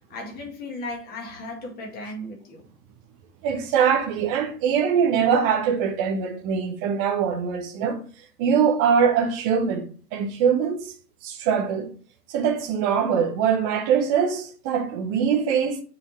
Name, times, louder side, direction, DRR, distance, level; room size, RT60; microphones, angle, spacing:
voice 1, 0.1-2.6, left 2 dB, 20° left, 1.9 m, -36 dB
voice 2, 3.4-8.0 8.4-9.9 10.1-10.9 11.2-11.9 12.3-15.8, right 7 dB, 15° right, 0.5 m, -22 dB
7.0 x 4.1 x 4.1 m
figure-of-eight pair, 115°, 49 cm